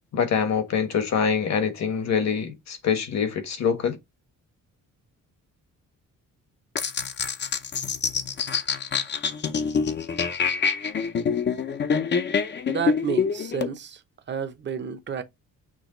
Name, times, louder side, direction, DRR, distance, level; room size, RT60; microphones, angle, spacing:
voice 1, 0.1-4.0, left 6 dB, 55° left, 1.2 m, -25 dB
sound 1, 6.8-13.7, left 6 dB, 35° left, 0.5 m, -26 dB
voice 2, 12.7-14.0 14.3-15.2, right 7 dB, 35° right, 0.7 m, -30 dB
6.2 x 2.2 x 3.8 m
cardioid pair, 135°, 32 cm